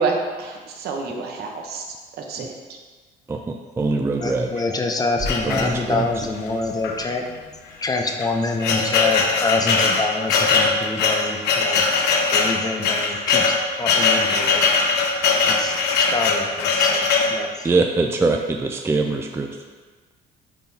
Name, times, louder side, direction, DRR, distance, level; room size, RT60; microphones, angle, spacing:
voice 1, 0.0-1.8 2.2-2.5, right 4 dB, 70° right, 2 dB, 0.9 m, -27 dB
voice 2, 3.3-4.5 5.5-6.1 17.6-19.6, right 3 dB, 15° right, 3 dB, 0.4 m, -23 dB
voice 3, 4.2-7.3 7.8-11.9 12.3-14.7 15.4-15.8 16.1-17.7, left 3 dB, 20° left, 3 dB, 0.6 m, -26 dB
sound 1, 5.2-8.2, equal, 30° right, 1.7 m, -37 dB
sound 2, 5.3-6.1 6.8-7.0 7.3-7.4 8.0-17.4, left 4 dB, 85° left, 0.8 m, -20 dB
10.0 x 3.7 x 2.8 m, 1.4 s
cardioid pair, 110°, 17 cm